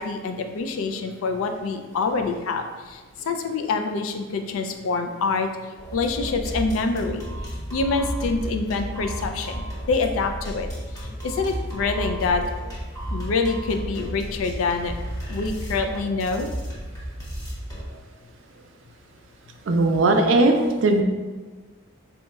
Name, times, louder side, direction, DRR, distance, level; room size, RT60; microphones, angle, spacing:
voice 1, 0.0-5.5 5.9-7.3 7.7-10.7 11.0-12.4 13.1-14.9 15.3-16.5, left 4 dB, 80° left, 6 dB, 0.3 m, -26 dB
sound 1, 5.8-17.9, equal, 15° left, 0.7 m, -33 dB
voice 2, 19.7-21.0, right 2 dB, 65° right, 5 dB, 0.4 m, -18 dB
4.0 x 2.8 x 2.3 m, 1.3 s
head